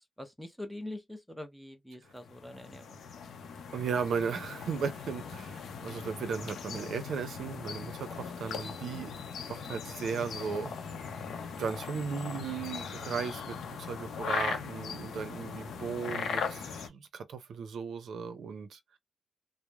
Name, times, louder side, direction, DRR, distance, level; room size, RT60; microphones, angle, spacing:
voice 1, 0.0-3.0, left 1 dB, ahead, 0.6 m, -44 dB
sound 1, 2.1-16.9, left 6 dB, 80° left, 0.6 m, -39 dB
voice 2, 3.7-9.2 9.5-10.7 11.6-18.8, right 6 dB, 75° right, 0.5 m, -36 dB
3.0 x 2.0 x 2.3 m
cardioid pair, 105°, 0 cm